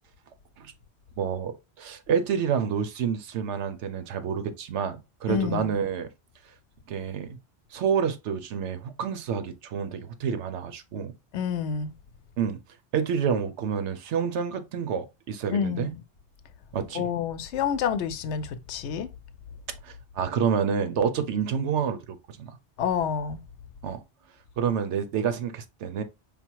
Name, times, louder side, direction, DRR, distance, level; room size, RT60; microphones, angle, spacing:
voice 1, 1.2-1.5 1.8-6.1 6.9-7.4 7.7-11.1 12.4-12.6 12.9-15.9 16.7-17.1 19.8-22.6 23.8-24.0 24.6-26.0, right 7 dB, 80° right, 1.0 m, -28 dB
voice 2, 5.3-5.8 11.3-11.9 15.5-16.0 16.9-19.1 22.8-23.4, left 7 dB, 75° left, 0.9 m, -28 dB
5.4 x 2.1 x 4.5 m
omnidirectional pair, 1.2 m